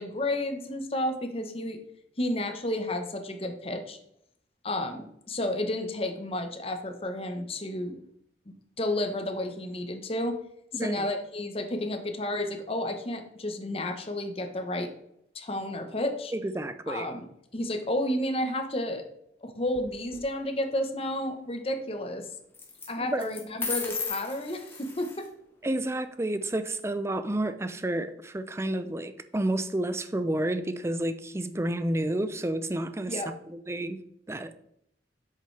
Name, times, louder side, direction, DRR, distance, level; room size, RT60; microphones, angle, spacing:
voice 1, 0.0-1.8 2.2-4.0 4.6-8.0 8.5-10.4 10.7-14.9 15.3-16.3 16.9-17.3 17.5-19.0 19.4-22.3 22.9-25.3 33.1-33.3, left 1 dB, 35° left, 1.0 m, -31 dB
voice 2, 10.7-11.0 16.3-17.1 23.1-23.3 25.6-33.2 33.5-34.0 34.3-34.6, right 1 dB, 15° right, 0.4 m, -30 dB
sound 1, 19.7-20.2 22.5-22.9 23.2-25.3, left 4 dB, 15° left, 1.3 m, -35 dB
8.1 x 6.7 x 3.3 m
head